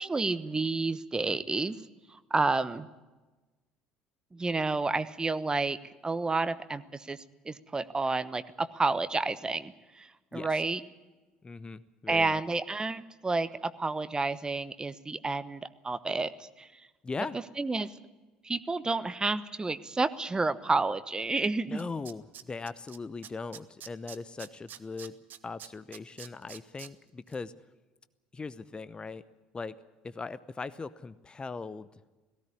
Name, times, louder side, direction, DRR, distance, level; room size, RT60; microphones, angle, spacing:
voice 1, 0.0-1.8 2.1-2.9 4.3-5.8 6.0-10.8 12.1-16.9 17.6-17.9 18.4-21.8, right 3 dB, 20° right, 13 dB, 1.1 m, -30 dB
voice 2, 11.4-12.4 17.0-17.4 21.7-25.1 25.4-27.5 28.3-29.2 29.5-29.8 30.0-31.9, left 4 dB, 20° left, 16 dB, 0.8 m, -39 dB
Tools, 21.4-21.5 21.8-23.0 23.2-26.9 27.3-27.4, right 10 dB, 45° right, 1.1 m, -46 dB
18.0 x 16.0 x 9.7 m, 1.2 s
figure-of-eight pair, 60°, 4 cm